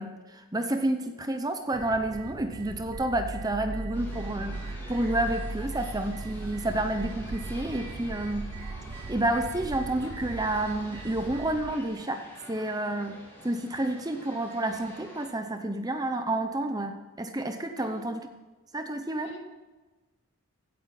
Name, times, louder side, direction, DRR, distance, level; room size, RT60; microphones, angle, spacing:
voice 1, 0.0-8.5 9.1-12.2 12.5-18.2 18.7-19.3, right 1 dB, 15° right, 7 dB, 0.8 m, -30 dB
sound 1, 1.7-11.7, right 3 dB, 80° right, 0.7 m, -38 dB
sound 2, 3.9-15.3, equal, 10° left, 3.6 m, -47 dB
voice 2, 17.7-18.1 19.2-19.4, left 2 dB, 55° left, 2 dB, 2.3 m, -47 dB
16.5 x 8.7 x 6.0 m, 1.2 s
head